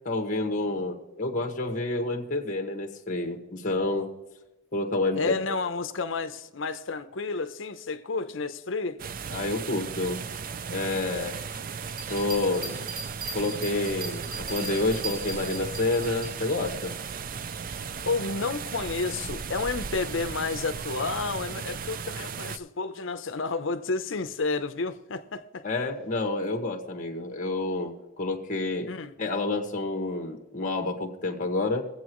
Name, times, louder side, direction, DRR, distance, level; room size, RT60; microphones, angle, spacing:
voice 1, 0.0-4.1 4.7-5.3 9.3-10.2 10.7-11.6 12.1-12.8 13.3-16.9 25.6-28.9 29.2-31.9, left 2 dB, 40° left, 1.7 m, -29 dB
voice 2, 5.1-9.0 18.0-25.7 28.9-29.1, left 4 dB, 65° left, 0.8 m, -31 dB
sound 1, 9.0-22.6, right 6 dB, 45° right, 0.4 m, -36 dB
Bell, 11.9-16.3 16.8-16.9, right 3 dB, 85° right, 2.5 m, -38 dB
23.0 x 8.0 x 3.1 m
head